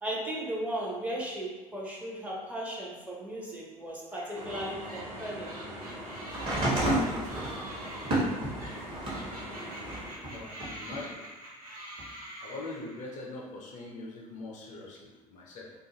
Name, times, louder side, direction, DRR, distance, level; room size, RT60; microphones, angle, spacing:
voice 1, 0.0-5.6, right 1 dB, 10° right, -4 dB, 0.7 m, -36 dB
sound 1, 4.1-13.2, right 1 dB, 85° right, 0.6 m, -46 dB
sound 2, 4.3-10.1, equal, 55° right, 0.9 m, -42 dB
sound 3, 6.3-9.3 9.8-11.0 12.0-12.1, right 1 dB, 30° right, 1.0 m, -30 dB
voice 2, 10.3-11.3 12.4-15.7, left 2 dB, 40° left, -2 dB, 0.5 m, -42 dB
2.4 x 2.3 x 2.8 m, 1.2 s
figure-of-eight pair, 60°, 18 cm